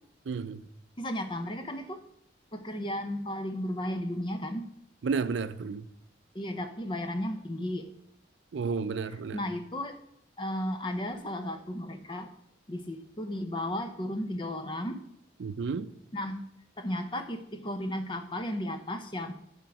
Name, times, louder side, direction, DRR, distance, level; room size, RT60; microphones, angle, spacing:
voice 1, 0.3-0.6 5.0-5.9 8.5-9.4 15.4-15.9, right 5 dB, 85° right, 0.4 m, -32 dB
voice 2, 1.0-2.0 2.5-4.7 6.3-7.9 9.3-10.0 10.4-12.3 12.7-15.0 16.1-16.4 16.8-19.3, left 1 dB, 25° left, 0.7 m, -34 dB
10.0 x 3.7 x 5.8 m
head